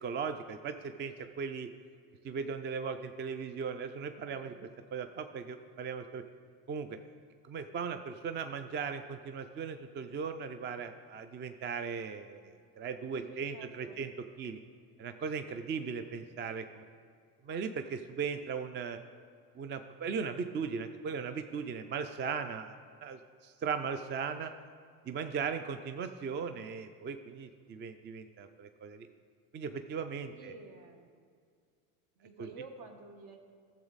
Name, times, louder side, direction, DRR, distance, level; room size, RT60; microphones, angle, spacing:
voice 1, 0.0-1.7 2.2-4.5 4.9-6.2 6.7-7.0 7.4-14.1 14.4-14.6 15.0-16.8 17.5-19.0 19.6-24.5 25.1-29.1 29.5-30.5, right 6 dB, 25° right, 9 dB, 0.3 m, -38 dB
voice 2, 4.3-4.6 13.1-14.0 22.4-22.5 30.3-31.3 32.2-33.4, right 4 dB, 55° right, 5 dB, 1.4 m, -50 dB
11.5 x 7.2 x 4.0 m, 2.2 s
supercardioid pair, 95°, 44 cm